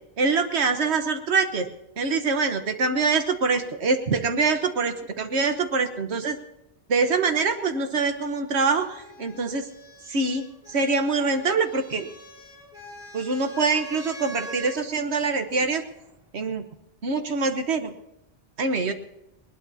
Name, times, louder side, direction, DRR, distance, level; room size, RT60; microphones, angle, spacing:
voice 1, 0.2-1.7 2.0-6.4 6.9-9.6 10.1-12.1 13.1-15.8 16.3-16.6 17.0-17.9 18.6-18.9, right 4 dB, 80° right, 7 dB, 1.4 m, -24 dB
sound 1, 8.2-14.8 15.9-16.5, equal, 5° right, 3.5 m, -44 dB
20.0 x 20.0 x 2.8 m, 0.88 s
omnidirectional pair, 1.1 m